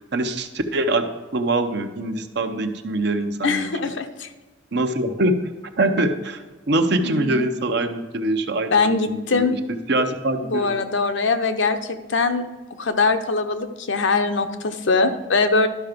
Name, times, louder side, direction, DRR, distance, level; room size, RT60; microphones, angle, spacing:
voice 1, 0.1-1.0 1.3-3.9 4.7-5.3 5.8-8.8 9.1-9.6 9.9-10.7, right 2 dB, 60° right, 7 dB, 0.8 m, -23 dB
voice 2, 3.4-4.3 7.0-7.4 8.7-9.6 10.4-12.4 12.8-15.7, left 3 dB, 70° left, 9 dB, 0.8 m, -22 dB
12.0 x 5.8 x 5.2 m, 1.3 s
head